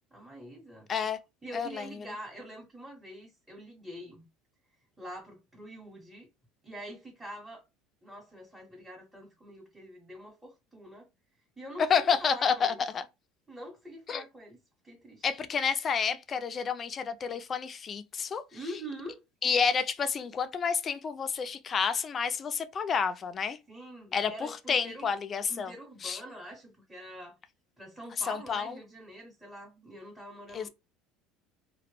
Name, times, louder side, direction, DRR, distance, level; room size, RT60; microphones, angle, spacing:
voice 1, 0.1-0.9 1.4-4.2 5.0-6.3 6.6-7.6 8.0-11.1 11.6-12.8 13.5-14.6 14.8-15.2 18.5-19.2 23.7-25.1 25.5-27.4 27.8-30.7, right 1 dB, 5° right, 0.7 m, -45 dB
voice 2, 1.5-1.9 11.8-13.0 14.1-14.2 15.2-18.4 19.4-23.6 24.1-24.3 24.7-25.7 26.0-26.2 28.3-28.7 30.5-30.7, left 6 dB, 35° left, 0.3 m, -29 dB
2.1 x 2.0 x 3.0 m
supercardioid pair, 110°, 0 cm